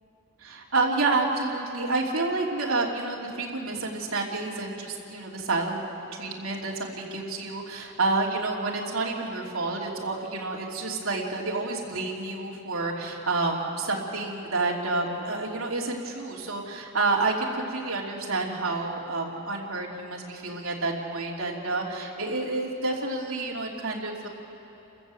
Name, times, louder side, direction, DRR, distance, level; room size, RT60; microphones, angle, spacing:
voice 1, 0.4-5.8 6.1-24.3, right 3 dB, 75° right, -2 dB, 3.0 m, -29 dB
29.5 x 15.0 x 7.7 m, 3.0 s
head